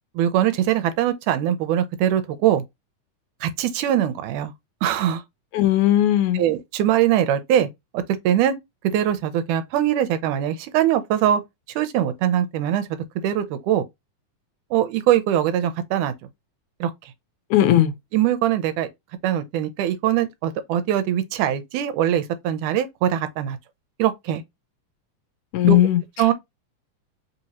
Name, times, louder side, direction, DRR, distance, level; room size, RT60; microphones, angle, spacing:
voice 1, 0.2-2.6 3.4-4.5 4.8-5.2 6.3-7.7 7.9-8.6 8.9-11.4 11.8-13.0 13.2-13.8 14.7-16.1 16.8-16.9 18.1-18.9 19.2-23.6 24.0-24.4 25.7-25.8 26.2-26.3, right 11 dB, 90° right, 2.1 m, -22 dB
voice 2, 5.5-6.4 17.5-17.9 25.5-26.0, left 12 dB, 80° left, 2.1 m, -17 dB
5.2 x 2.9 x 2.8 m
omnidirectional pair, 3.6 m